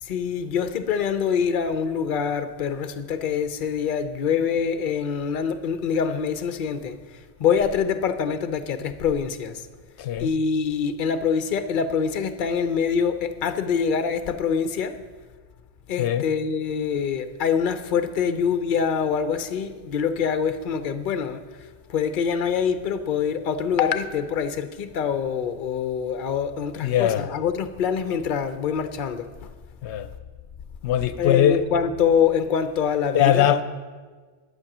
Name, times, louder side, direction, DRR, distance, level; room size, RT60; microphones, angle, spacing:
voice 1, 0.0-9.7 10.2-14.9 15.9-21.4 21.9-29.3 31.2-33.6, left 7 dB, 55° left, 0.8 m, -25 dB
voice 2, 10.0-10.3 16.0-16.3 26.8-27.3 29.8-30.1 30.8-31.7 33.1-33.6, left 10 dB, 85° left, 0.9 m, -21 dB
11.5 x 8.2 x 6.0 m
omnidirectional pair, 1.1 m